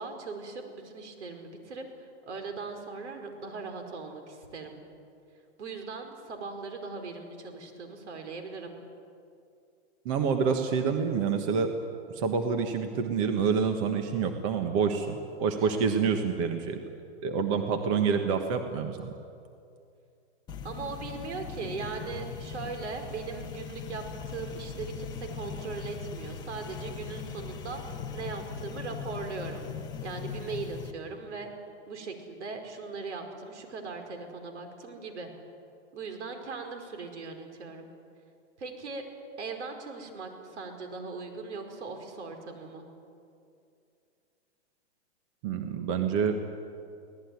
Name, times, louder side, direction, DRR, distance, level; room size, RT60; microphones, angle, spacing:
voice 1, 0.0-1.8 2.3-4.8 5.6-8.8 15.6-15.9 20.6-27.8 28.1-29.7 30.0-31.5 31.9-35.3 35.9-37.9 38.6-39.0 39.4-42.9, right 4 dB, 75° right, 5 dB, 5.0 m, -39 dB
voice 2, 10.0-11.7 12.1-16.8 17.2-19.2 45.4-46.4, right 6 dB, 30° right, 6 dB, 1.3 m, -27 dB
sound 1, 20.5-30.9, left 6 dB, 10° left, 1.1 m, -40 dB
24.0 x 18.5 x 9.6 m, 2.5 s
hypercardioid pair, 165°, 35 cm